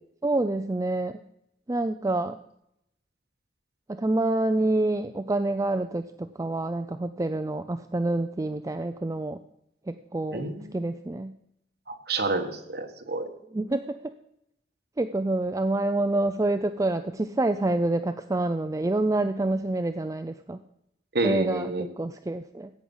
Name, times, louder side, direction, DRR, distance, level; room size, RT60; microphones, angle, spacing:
voice 1, 0.2-1.2 1.7-2.4 3.9-9.4 9.9-10.4 10.7-11.3 13.5-14.1 15.0-20.6 21.2-22.7, right 2 dB, 20° right, 9 dB, 0.4 m, -27 dB
voice 2, 10.3-10.7 11.9-13.3 21.1-21.9, right 2 dB, 60° right, 4 dB, 1.6 m, -29 dB
15.5 x 8.6 x 5.5 m, 0.78 s
head